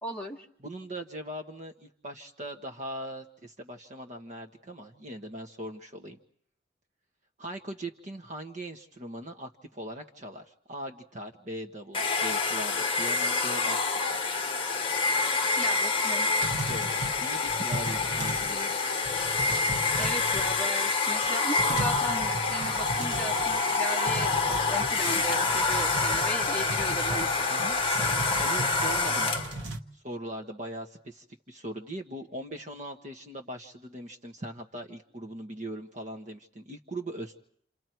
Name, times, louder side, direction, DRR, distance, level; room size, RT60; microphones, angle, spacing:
voice 1, 0.0-0.5 15.6-16.3 17.9-18.1 20.0-24.4 24.7-27.5, equal, 10° left, -2 dB, 2.7 m, -36 dB
voice 2, 0.6-6.2 7.4-13.9 16.7-18.8 27.5-29.3 29.9-37.4, right 1 dB, 40° right, 5 dB, 1.5 m, -40 dB
Domestic sounds home sounds, 11.9-29.6, left 4 dB, 30° left, 1.5 m, -27 dB
sound 1, 16.4-18.6 18.8-20.8 21.2-21.3 21.6-23.7 24.0-29.8, right 2 dB, 90° right, 1.4 m, -37 dB
29.0 x 28.5 x 4.6 m, 0.64 s
head